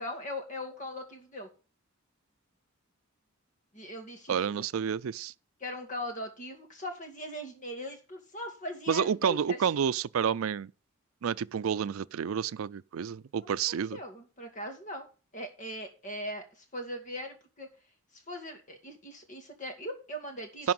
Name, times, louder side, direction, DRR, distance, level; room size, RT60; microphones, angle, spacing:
voice 1, 0.0-1.5 3.7-4.7 5.6-9.7 13.4-15.1 15.3-17.7 18.1-20.7, left 1 dB, 40° left, 2.4 m, -40 dB
voice 2, 4.3-5.3 8.9-10.7 11.2-14.0 20.6-20.7, right 7 dB, 90° right, 0.4 m, -29 dB
11.0 x 4.6 x 7.7 m
head